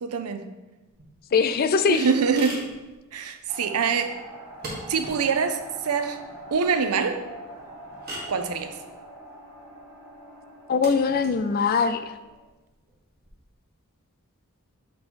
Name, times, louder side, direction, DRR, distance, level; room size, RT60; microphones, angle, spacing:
voice 1, 0.0-0.4 1.9-2.6 3.1-4.2 4.9-6.2 6.5-7.2 8.3-8.7, right 5 dB, 90° right, 8 dB, 0.6 m, -24 dB
sound 1, 0.9-13.3, right 1 dB, 45° right, 1.7 m, -44 dB
voice 2, 1.3-2.1 10.7-12.1, left 5 dB, 45° left, 10 dB, 0.4 m, -22 dB
sound 2, 3.5-12.4, right 1 dB, 10° right, 1.3 m, -44 dB
8.4 x 3.0 x 4.4 m, 1.1 s
head